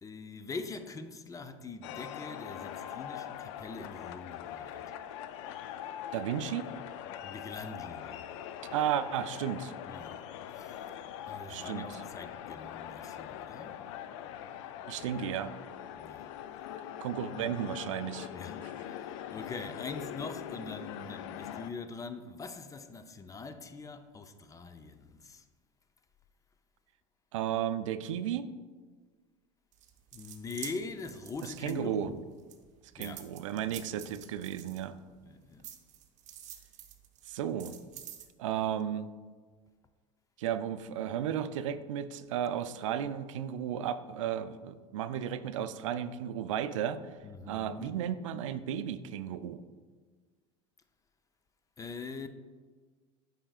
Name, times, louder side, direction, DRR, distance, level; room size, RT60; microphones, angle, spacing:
voice 1, 0.0-4.9 7.2-8.3 9.9-10.3 10.5-10.9 11.3-13.8 15.0-15.1 16.0-16.4 17.3-17.6 18.3-25.4 30.1-32.3 33.0-33.3 33.7-34.1 35.2-35.7 47.2-48.0 51.8-52.3, left 4 dB, 20° left, 0.5 m, -43 dB
sound 1, 1.8-21.7, left 10 dB, 70° left, 0.4 m, -42 dB
voice 2, 6.1-6.7 8.7-9.7 11.5-12.0 14.9-15.5 17.0-18.3 27.3-28.5 31.4-32.1 32.9-35.0 37.3-37.8 38.4-39.1 40.4-47.0 47.5-49.6, right 10 dB, 80° right, 0.4 m, -34 dB
sound 2, 29.7-32.1 32.5-35.2 35.6-38.3, right 10 dB, 50° right, 0.8 m, -48 dB
8.6 x 5.7 x 2.4 m
hypercardioid pair, 90°, 16 cm